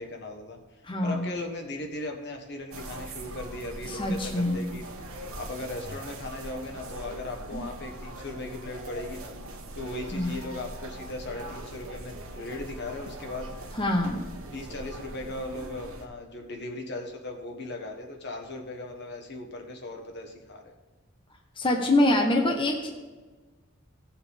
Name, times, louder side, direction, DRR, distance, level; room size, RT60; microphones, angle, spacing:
voice 1, 0.0-4.8 5.4-9.3 9.7-13.5 14.5-20.7, left 2 dB, 55° left, 2 dB, 1.3 m, -38 dB
voice 2, 0.8-1.3 3.9-4.7 7.5-7.6 10.1-10.3 13.8-14.2 21.6-22.9, left 1 dB, 25° left, 1 dB, 1.0 m, -25 dB
sound 1, 2.7-16.0, right 1 dB, 90° right, 1.3 m, -41 dB
16.0 x 7.2 x 3.6 m, 1.3 s
head